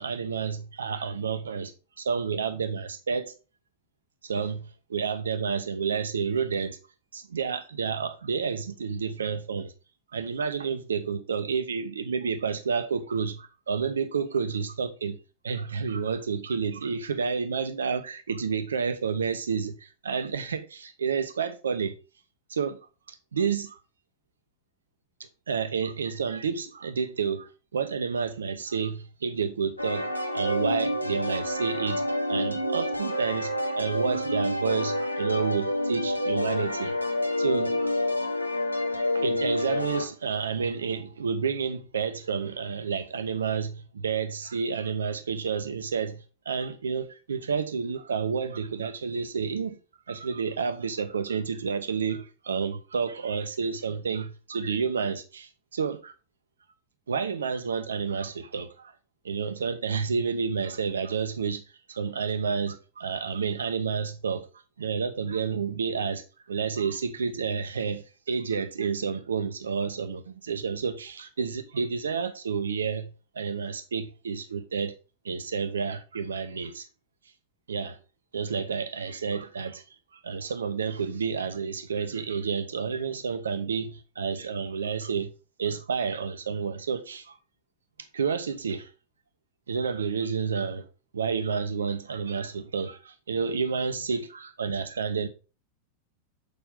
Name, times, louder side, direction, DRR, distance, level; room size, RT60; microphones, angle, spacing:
voice 1, 0.0-1.7 2.0-3.3 4.2-6.8 7.1-9.7 10.1-15.2 15.4-21.9 22.5-22.8 23.1-23.8 25.5-36.9 37.4-38.0 39.1-49.8 50.1-56.1 57.1-58.9 59.2-64.5 64.8-74.9 75.2-76.9 77.7-78.0 78.3-79.8 80.2-85.3 85.6-87.4 88.1-88.9 89.7-90.9 91.1-95.3, right 6 dB, 70° right, 0.8 m, -30 dB
sound 1, 29.8-40.1, left 1 dB, 90° right, 1.1 m, -28 dB
6.6 x 5.3 x 3.7 m
figure-of-eight pair, 90°, 0 cm